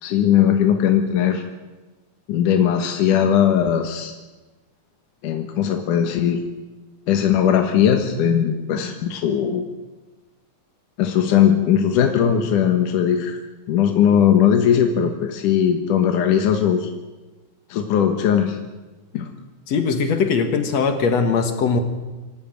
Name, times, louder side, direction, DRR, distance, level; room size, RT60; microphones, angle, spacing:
voice 1, 0.0-1.4 2.3-4.1 5.2-6.4 7.1-9.6 11.0-13.4 13.7-16.9 17.7-18.6 19.1-19.3, left 9 dB, 75° left, 5 dB, 2.9 m, -19 dB
voice 2, 19.7-21.8, left 5 dB, 60° left, 8 dB, 2.5 m, -20 dB
24.0 x 14.0 x 9.0 m, 1.2 s
omnidirectional pair, 3.7 m